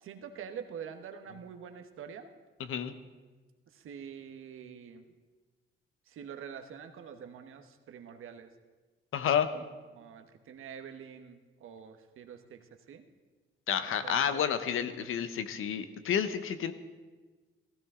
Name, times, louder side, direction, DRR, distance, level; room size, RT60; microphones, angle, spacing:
voice 1, 0.0-2.3 3.7-5.0 6.1-8.5 9.5-9.6 9.9-12.6 12.9-13.0 14.0-14.4, right 7 dB, 80° right, 7 dB, 1.1 m, -45 dB
voice 2, 9.1-9.5 13.7-16.7, left 8 dB, 80° left, 11 dB, 0.9 m, -30 dB
15.0 x 15.0 x 3.7 m, 1.3 s
cardioid pair, 115°, 21 cm